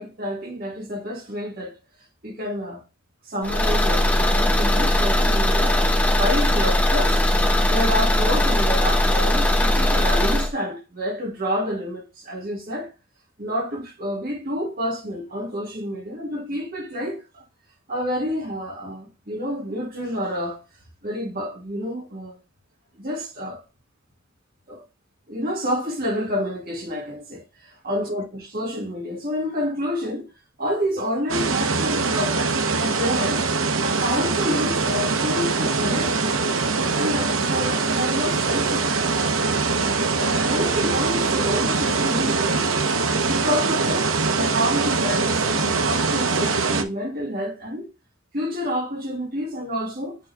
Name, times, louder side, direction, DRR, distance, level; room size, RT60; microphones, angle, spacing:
voice 1, 0.0-1.7 2.2-2.8 3.3-5.8 6.1-7.2 7.7-12.9 13.4-17.4 17.9-20.6 21.0-22.4 23.0-23.6 24.7-24.9 25.3-30.3 30.6-33.4 33.8-36.6 36.9-39.3 39.8-42.9 43.3-47.9 48.3-50.2, equal, 45° right, 2.4 m, -29 dB
Car / Engine, 3.4-10.5, left 1 dB, 5° left, 1.1 m, -19 dB
sound 1, 31.3-46.8, right 4 dB, 85° right, 0.9 m, -23 dB
7.6 x 3.7 x 3.4 m
head